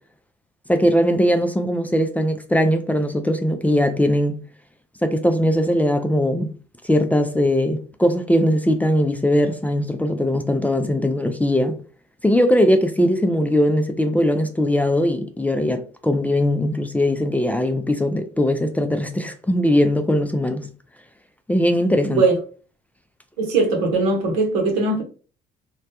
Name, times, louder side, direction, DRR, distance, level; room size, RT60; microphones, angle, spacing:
voice 1, 0.7-4.4 5.0-6.5 6.8-11.8 12.2-20.7 21.5-22.2, equal, 10° left, 0.4 m, -20 dB
voice 2, 22.0-22.3 23.4-25.0, right 3 dB, 85° right, 0.8 m, -20 dB
2.2 x 2.1 x 2.8 m
supercardioid pair, 65°, 20 cm